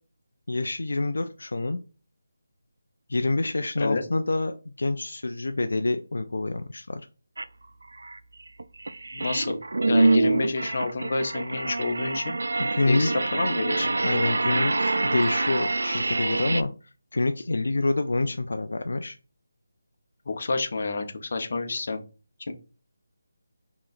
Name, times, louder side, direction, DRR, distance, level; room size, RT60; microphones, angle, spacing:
voice 1, 0.5-1.8 3.1-7.0 12.6-13.1 14.0-19.2, left 2 dB, 75° left, 7 dB, 0.4 m, -27 dB
sound 1, 7.4-7.5 7.9-16.6, right 2 dB, 80° right, 0.3 m, -26 dB
voice 2, 9.1-9.6 9.9-12.4 12.8-13.9 20.3-22.0 22.5-22.6, left 3 dB, 50° left, 6 dB, 0.8 m, -29 dB
4.8 x 3.0 x 2.5 m, 0.34 s
figure-of-eight pair, 170°, 0 cm